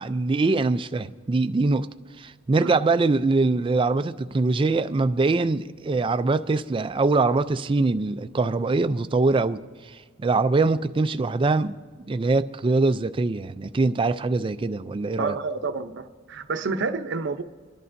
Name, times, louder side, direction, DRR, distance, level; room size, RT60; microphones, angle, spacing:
voice 1, 0.0-1.9 2.2-9.6 10.2-11.7 12.1-15.4, right 3 dB, 25° right, 0.3 m, -23 dB
voice 2, 15.2-17.4, right 4 dB, 60° right, 0.7 m, -29 dB
27.5 x 11.0 x 2.6 m
head